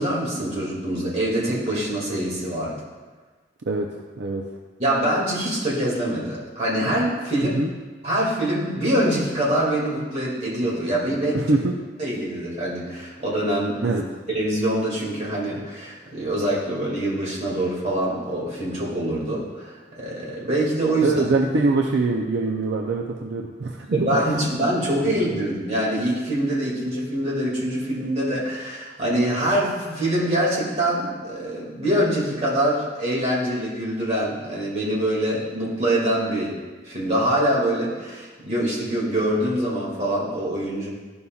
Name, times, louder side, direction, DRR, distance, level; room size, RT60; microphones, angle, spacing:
voice 1, 0.0-2.8 4.8-7.6 8.0-11.4 12.0-14.0 14.3-21.2 23.9-36.6 36.8-40.9, right 1 dB, 40° right, -5 dB, 2.1 m, -24 dB
voice 2, 11.3-11.7 13.8-14.0 21.0-24.1 25.0-25.4, right 3 dB, 70° right, 1 dB, 0.5 m, -23 dB
12.5 x 5.4 x 2.3 m, 1.4 s
head